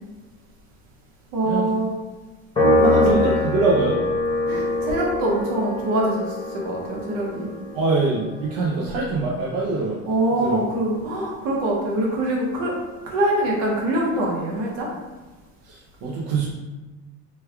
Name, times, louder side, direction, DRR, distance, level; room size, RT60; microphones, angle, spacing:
voice 1, 1.3-1.9 2.8-3.3 4.5-7.5 10.1-12.7 13.0-14.9, right 1 dB, 85° right, -2 dB, 1.0 m, -24 dB
Piano, 2.6-9.1, left 2 dB, 15° left, 0.8 m, -24 dB
voice 2, 2.8-4.0 4.5-4.7 7.7-8.2 8.5-10.0 10.4-10.6 15.6-16.5, right 3 dB, 70° right, -5 dB, 0.6 m, -23 dB
3.2 x 2.3 x 3.3 m, 1.3 s
cardioid pair, 175°, 34 cm